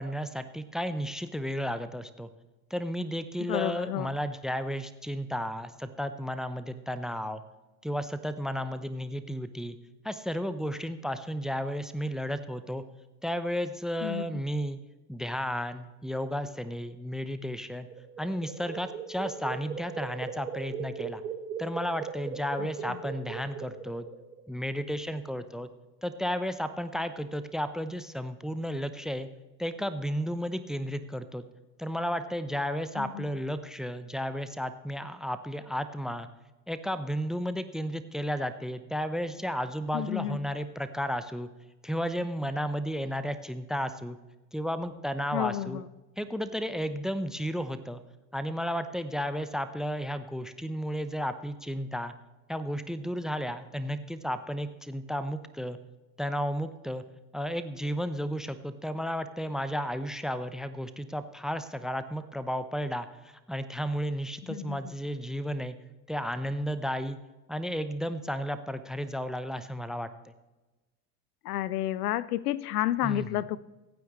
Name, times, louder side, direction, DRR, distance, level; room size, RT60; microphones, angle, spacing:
voice 1, 0.0-2.3 2.7-7.4 7.8-9.8 10.0-12.8 13.2-14.8 15.1-17.9 18.2-21.2 21.6-24.1 24.5-25.7 26.0-29.3 29.6-31.4 31.8-36.3 36.7-41.5 41.8-44.2 44.5-45.8 46.2-48.0 48.3-52.1 52.5-55.8 56.2-57.0 57.3-65.8 66.1-67.2 67.5-70.3 73.0-73.4, equal, ahead, 0.7 m, -33 dB
voice 2, 3.5-4.1 14.0-14.3 33.0-33.2 39.9-40.4 45.3-45.8 64.5-64.8 71.4-73.6, left 13 dB, 65° left, 0.6 m, -30 dB
sound 1, 17.9-24.4, right 6 dB, 80° right, 1.8 m, -39 dB
24.0 x 9.3 x 3.1 m
figure-of-eight pair, 75°, 49 cm